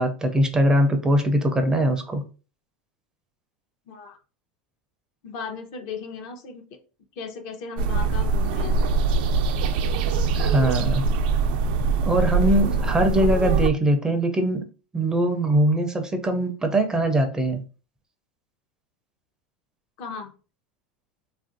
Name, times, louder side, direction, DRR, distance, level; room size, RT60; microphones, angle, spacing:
voice 1, 0.0-2.2 10.4-11.1 12.0-14.6 14.9-17.6, right 1 dB, 15° right, 6 dB, 0.4 m, -22 dB
voice 2, 3.9-4.2 5.2-6.8 7.2-8.8 12.7-13.0 20.0-20.3, left 5 dB, 60° left, 5 dB, 0.7 m, -36 dB
sound 1, 7.8-13.7, right 4 dB, 75° right, 0.3 m, -23 dB
3.2 x 2.5 x 2.5 m, 0.35 s
supercardioid pair, 125°, 5 cm